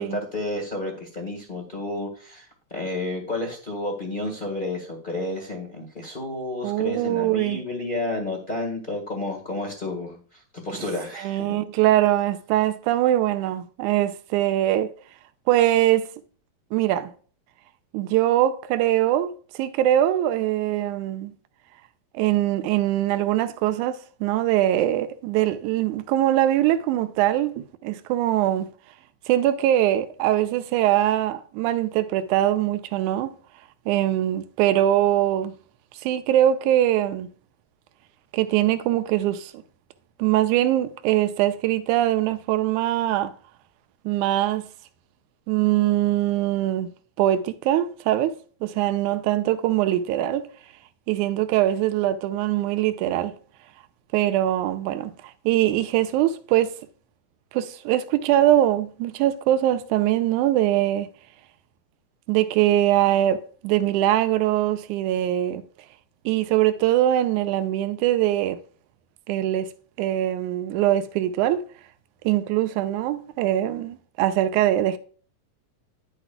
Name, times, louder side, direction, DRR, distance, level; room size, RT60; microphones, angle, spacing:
voice 1, 0.0-11.6, left 2 dB, 30° left, 1.0 m, -31 dB
voice 2, 6.6-7.6 10.7-10.8 11.2-14.9 15.5-16.1 16.7-17.1 17.9-21.3 22.1-28.7 29.3-33.3 33.9-35.6 35.9-37.3 38.3-39.6 40.2-43.3 44.1-44.7 45.5-46.9 47.2-48.4 48.6-50.5 51.1-53.4 54.1-56.7 57.5-61.1 62.3-65.6 66.3-68.6 69.3-69.7 70.0-71.7 72.2-75.0, right 13 dB, 85° right, 2.1 m, -22 dB
10.5 x 7.9 x 2.3 m
omnidirectional pair, 3.5 m